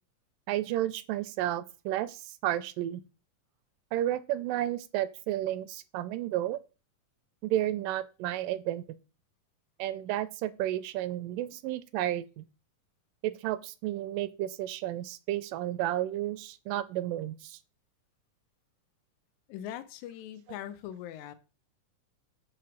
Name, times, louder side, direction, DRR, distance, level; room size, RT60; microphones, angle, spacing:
voice 1, 0.5-3.0 3.9-6.6 7.4-8.8 9.8-12.4 13.2-17.6, right 13 dB, 90° right, 2.2 m, -32 dB
voice 2, 19.5-21.3, left 11 dB, 75° left, 1.9 m, -41 dB
7.5 x 3.1 x 6.1 m
omnidirectional pair, 3.8 m